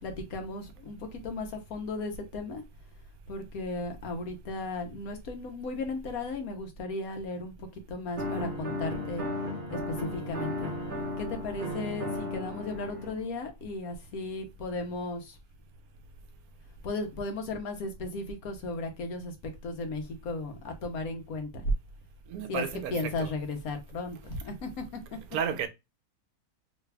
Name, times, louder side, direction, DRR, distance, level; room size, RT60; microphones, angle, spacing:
voice 1, 0.0-2.6 3.3-9.2 9.7-10.8 11.2-15.4 16.8-21.6 22.5-25.0, left 3 dB, 70° left, 1.3 m, -36 dB
sound 1, 8.2-13.2, left 1 dB, 40° right, 0.8 m, -35 dB
voice 2, 22.3-23.3 25.3-25.7, right 8 dB, 75° right, 1.1 m, -32 dB
3.3 x 2.3 x 3.2 m
omnidirectional pair, 1.6 m